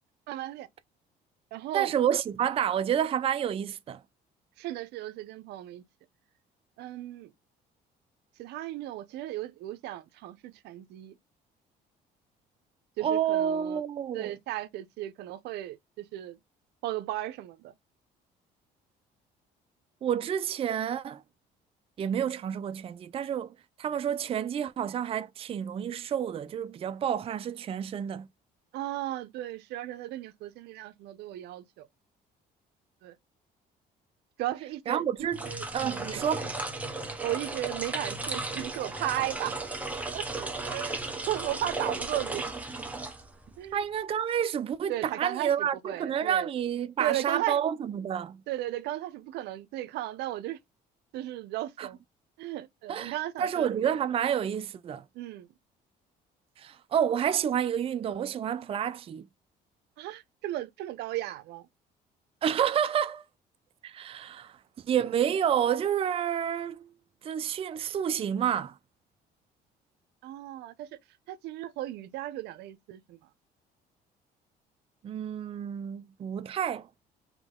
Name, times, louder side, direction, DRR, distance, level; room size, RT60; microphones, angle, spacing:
voice 1, 0.3-0.7 1.5-1.9 4.6-5.8 6.8-7.3 8.4-11.1 13.0-13.8 14.1-16.4 16.8-17.7 28.7-31.9 33.0-33.2 34.4-36.3 37.2-39.6 40.1-40.3 40.6-40.9 41.3-42.4 43.6-43.8 44.9-46.5 47.0-47.6 48.5-50.6 51.1-52.0 52.4-53.8 55.1-55.5 60.0-61.7 70.2-70.9 71.3-73.2, right 14 dB, 80° right, 0.6 m, -35 dB
voice 2, 1.7-4.0 13.0-14.3 20.0-21.2 22.0-23.5 23.8-28.3 34.9-36.5 43.7-48.4 51.8-51.9 52.9-55.0 56.6-59.3 62.4-63.2 63.8-64.6 64.9-66.9 67.2-68.7 75.0-76.9, right 9 dB, 35° right, 0.4 m, -29 dB
sound 1, 35.2-43.6, right 2 dB, 10° right, 1.0 m, -35 dB
3.7 x 3.0 x 3.6 m
cardioid pair, 110°, 17 cm